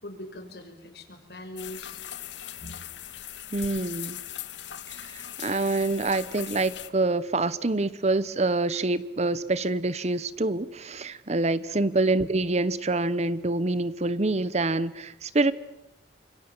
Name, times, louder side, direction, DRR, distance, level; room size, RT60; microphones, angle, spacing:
voice 1, 0.0-2.0 11.6-11.8, left 1 dB, 65° left, 5 dB, 5.5 m, -42 dB
sound 1, 1.6-6.9, left 11 dB, 90° left, 1.5 m, -39 dB
voice 2, 3.5-4.2 5.0-15.5, right 2 dB, 40° right, 16 dB, 0.9 m, -26 dB
29.0 x 26.0 x 7.2 m, 0.85 s
head